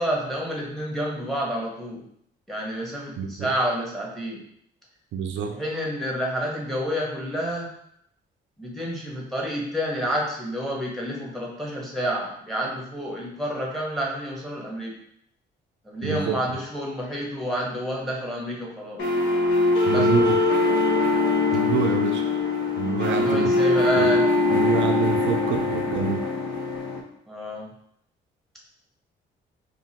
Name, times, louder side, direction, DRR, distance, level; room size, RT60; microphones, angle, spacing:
voice 1, 0.0-2.0 2.5-4.4 5.5-7.7 8.6-14.9 15.8-19.0 19.9-20.1 23.0-24.3 27.3-27.7, equal, ahead, -2 dB, 1.2 m, -29 dB
voice 2, 3.2-3.5 5.1-5.5 16.0-16.4 19.9-20.4 21.5-22.2 22.8-23.5 24.0-24.1 24.5-26.3, right 7 dB, 70° right, 3 dB, 0.5 m, -27 dB
sound 1, 19.0-27.0, left 3 dB, 70° left, 1.0 m, -22 dB
3.7 x 2.6 x 2.9 m, 0.71 s
cardioid pair, 90°, 20 cm